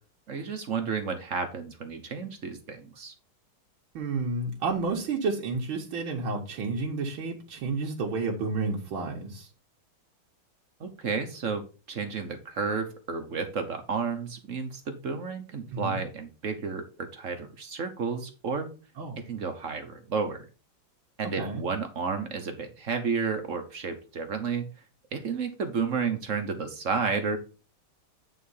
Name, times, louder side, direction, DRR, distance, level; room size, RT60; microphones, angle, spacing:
voice 1, 0.3-3.1 10.8-18.7 19.3-20.4 21.2-24.6 25.1-27.4, right 5 dB, 50° right, 6 dB, 1.1 m, -31 dB
voice 2, 3.9-9.5 15.7-16.0 19.0-19.2 21.4-21.6, right 3 dB, 85° right, -1 dB, 2.1 m, -31 dB
9.3 x 3.8 x 5.4 m, 0.34 s
omnidirectional pair, 2.2 m